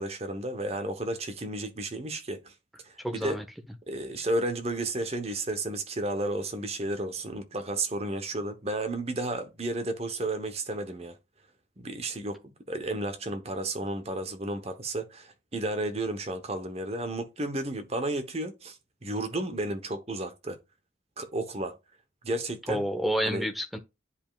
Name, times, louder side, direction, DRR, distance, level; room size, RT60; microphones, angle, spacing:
voice 1, 0.0-2.5 2.8-3.4 3.9-11.2 11.8-18.8 19.0-20.6 21.2-21.8 22.2-22.8 23.2-23.5, right 2 dB, 35° right, 1.0 m, -32 dB
voice 2, 3.0-3.4 22.7-23.8, equal, ahead, 1.0 m, -29 dB
9.9 x 5.1 x 2.4 m
head